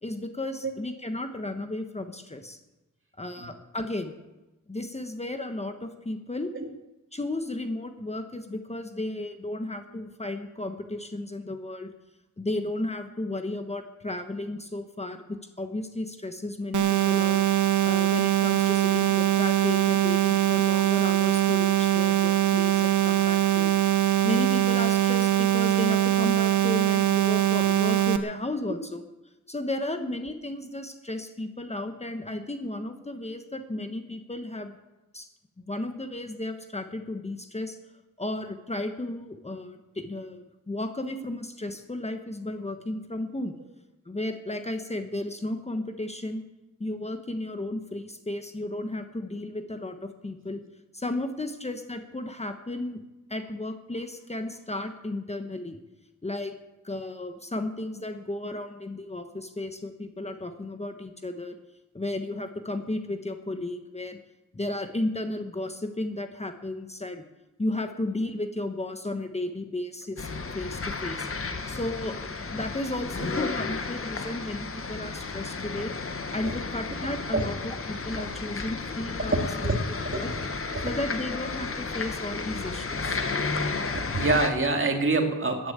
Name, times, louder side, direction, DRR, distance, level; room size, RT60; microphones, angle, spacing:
voice 1, 0.0-2.6 3.2-4.1 4.7-6.5 7.1-11.9 12.4-15.2 15.6-17.4 17.8-23.7 24.2-29.0 29.5-34.7 35.1-35.3 35.6-37.8 38.2-43.6 44.0-46.4 46.8-50.6 50.9-53.0 53.3-55.8 56.2-56.6 56.8-61.6 61.9-64.2 64.5-67.2 67.6-70.3 70.5-71.3 71.7-75.9 76.3-79.8 80.1-80.3 80.8-83.2, left 2 dB, 20° left, 7 dB, 1.2 m, -34 dB
sound 1, 16.7-28.2, right 12 dB, 85° right, 1.1 m, -22 dB
sound 2, 70.2-84.5, left 4 dB, 50° left, 1.5 m, -33 dB
voice 2, 79.3-79.8 80.1-80.4 80.7-80.9 83.5-83.6 83.9-85.7, right 3 dB, 45° right, 4 dB, 2.4 m, -26 dB
14.0 x 10.5 x 8.8 m, 1.0 s
wide cardioid pair, 130°, 30 cm